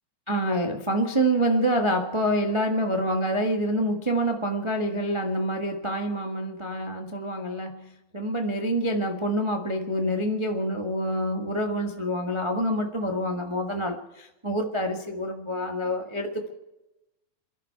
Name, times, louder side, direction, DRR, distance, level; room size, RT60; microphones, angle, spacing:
voice 1, 0.3-16.5, equal, 45° right, 3 dB, 0.3 m, -27 dB
27.5 x 11.5 x 4.6 m, 0.97 s
omnidirectional pair, 3.5 m